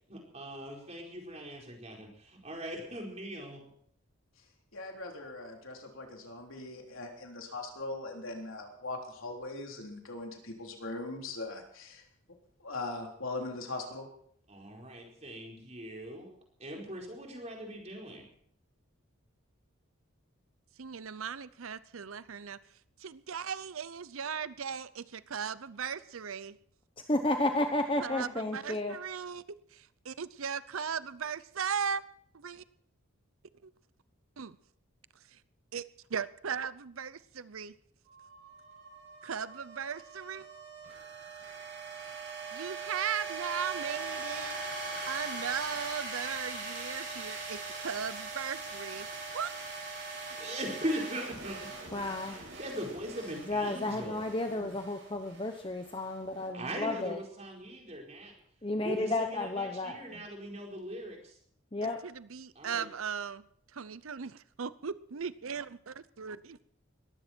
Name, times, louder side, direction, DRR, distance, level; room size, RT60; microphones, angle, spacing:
voice 1, 0.1-3.7 14.5-16.3 16.6-18.3 50.4-51.7 52.2-54.8 56.5-58.3 58.8-61.4 62.5-62.9, equal, 30° right, 0 dB, 4.6 m, -40 dB
voice 2, 4.7-12.0 12.6-14.1, left 2 dB, 75° left, 1 dB, 3.7 m, -40 dB
voice 3, 20.8-22.6 23.0-26.6 28.0-29.4 29.7-32.0 32.3-32.6 33.6-33.7 34.4-34.6 35.3-35.4 35.7-35.8 36.1-37.8 39.2-40.5 42.5-44.6 45.1-49.5 61.8-63.4 63.7-66.6, right 7 dB, 80° right, 16 dB, 0.7 m, -37 dB
voice 4, 27.1-29.0 51.9-52.4 53.5-57.2 58.6-60.2 61.7-62.0, left 2 dB, 25° left, 5 dB, 1.0 m, -32 dB
sound 1, 38.1-56.4, right 4 dB, 60° right, 7.8 m, -41 dB
21.0 x 15.0 x 4.5 m, 0.67 s
head